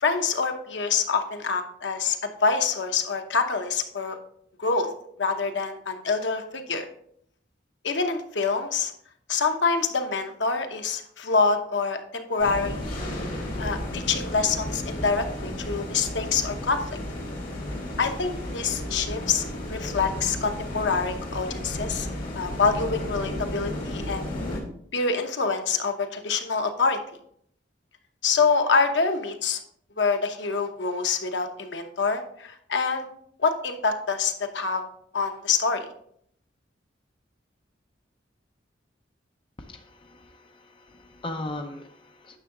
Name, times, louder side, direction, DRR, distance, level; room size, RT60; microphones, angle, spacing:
voice 1, 0.0-2.2 2.4-4.2 4.6-4.9 5.2-6.9 7.8-8.9 9.3-12.9 13.6-16.8 18.0-22.1 22.4-24.3 24.9-27.0 28.2-29.6 30.0-33.0 33.4-34.8 35.1-35.9, left 4 dB, 70° left, 6 dB, 0.9 m, -26 dB
sound 1, 12.4-24.6, left 1 dB, 50° left, 2.9 m, -33 dB
voice 2, 39.6-42.4, left 2 dB, 25° left, 4 dB, 0.7 m, -38 dB
9.8 x 6.3 x 3.8 m, 0.68 s
head